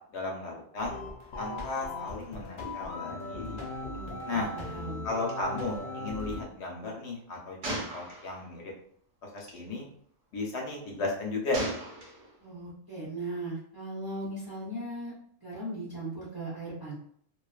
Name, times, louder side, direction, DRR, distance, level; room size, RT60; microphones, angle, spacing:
voice 1, 0.1-1.0 1.4-3.6 4.3-4.5 5.0-8.6 9.3-9.9 10.3-11.6, left 3 dB, 75° left, -1 dB, 1.0 m, -35 dB
sound 1, 0.8-6.4, left 2 dB, 60° left, 0.6 m, -38 dB
voice 2, 3.9-5.0 12.4-15.2 15.4-16.9, right 1 dB, 25° right, -7 dB, 0.6 m, -38 dB
Gunshot gunfire, 5.3-5.4 5.6-5.8 7.6-8.6 9.4-9.6 11.5-12.5, right 1 dB, 90° right, 1.2 m, -37 dB
2.5 x 2.3 x 2.4 m, 0.62 s
omnidirectional pair, 1.2 m